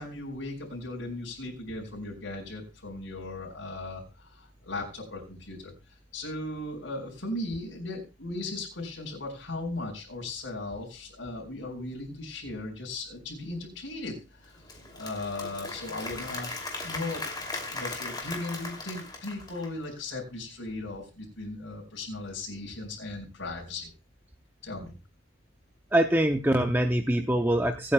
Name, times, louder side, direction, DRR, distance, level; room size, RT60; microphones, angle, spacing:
voice 1, 0.0-14.6 14.9-16.5 16.8-17.2 17.7-23.9 24.6-24.9, left 2 dB, 75° left, -2 dB, 4.9 m, -37 dB
Applause / Crowd, 14.4-19.8, left 2 dB, 20° left, 2.8 m, -38 dB
voice 2, 25.9-27.9, right 1 dB, 10° right, 4 dB, 0.6 m, -24 dB
24.5 x 8.8 x 2.3 m, 0.29 s
head